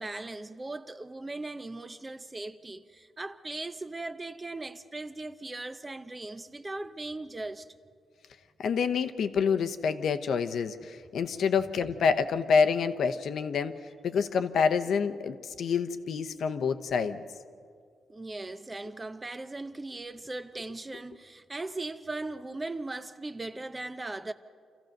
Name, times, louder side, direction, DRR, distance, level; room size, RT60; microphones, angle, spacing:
voice 1, 0.0-7.7 18.1-24.3, right 2 dB, 15° right, 0.6 m, -38 dB
voice 2, 8.6-13.8 14.0-17.2, left 6 dB, 65° left, 0.9 m, -27 dB
27.5 x 15.0 x 6.6 m
wide cardioid pair, 145°, 0 cm